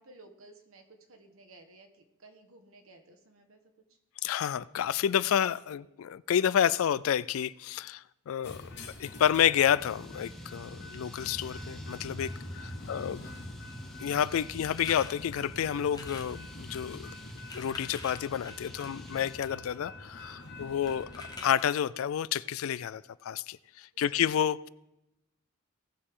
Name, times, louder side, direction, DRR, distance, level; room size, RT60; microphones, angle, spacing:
voice 1, 0.0-3.6 3.9-4.0 12.8-13.1 24.1-24.2, right 2 dB, 70° right, 1.4 m, -56 dB
voice 2, 4.2-8.6 9.0-13.3 14.0-17.1 17.5-21.1 21.4-24.7, left 9 dB, 70° left, 0.3 m, -29 dB
sound 1, 8.4-21.4, left 2 dB, 55° left, 1.1 m, -47 dB
sound 2, 9.8-19.4, equal, ahead, 0.8 m, -46 dB
sound 3, 14.7-15.1 15.9-16.4 17.2-19.7 20.9-21.8, left 3 dB, 20° left, 1.2 m, -46 dB
18.0 x 6.5 x 3.7 m
head